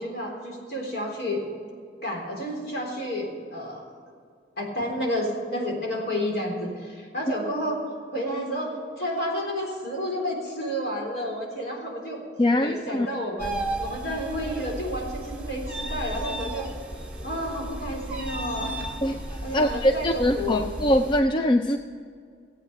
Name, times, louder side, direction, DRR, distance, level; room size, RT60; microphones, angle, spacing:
voice 1, 0.0-1.4 2.0-3.9 4.6-7.8 8.1-12.2 12.5-16.7 17.2-18.8 19.4-20.6, equal, 60° left, -1 dB, 3.8 m, -31 dB
voice 2, 12.4-13.1 19.0-19.2 19.5-21.8, left 1 dB, 25° left, 6 dB, 0.4 m, -22 dB
sound 1, 13.4-21.2, right 1 dB, 5° right, 1.7 m, -34 dB
16.5 x 8.6 x 6.8 m, 2.2 s
head